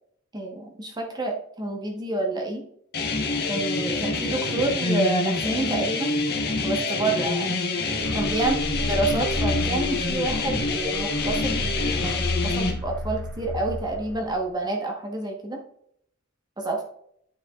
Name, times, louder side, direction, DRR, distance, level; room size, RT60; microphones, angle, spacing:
voice 1, 0.3-2.6 3.5-6.1 6.5-7.6 8.1-8.6 8.9-15.6 16.6-16.8, right 2 dB, 20° right, 1 dB, 1.1 m, -28 dB
sound 1, 2.9-12.7, left 3 dB, 50° left, 1.2 m, -26 dB
sound 2, 8.0-14.5, left 1 dB, 5° left, 0.9 m, -32 dB
9.0 x 5.2 x 2.4 m, 0.68 s
head